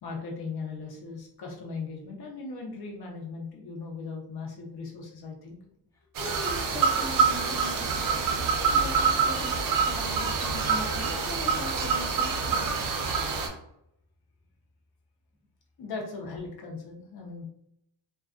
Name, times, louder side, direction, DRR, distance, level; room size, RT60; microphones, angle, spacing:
voice 1, 0.0-5.6 15.8-17.4, left 4 dB, 60° left, 0 dB, 0.8 m, -38 dB
sound 1, 6.1-13.5, right 5 dB, 50° right, 0.5 m, -26 dB
voice 2, 6.2-12.7, equal, 10° left, -3 dB, 0.3 m, -40 dB
2.3 x 2.3 x 2.4 m, 0.78 s
cardioid pair, 145°, 44 cm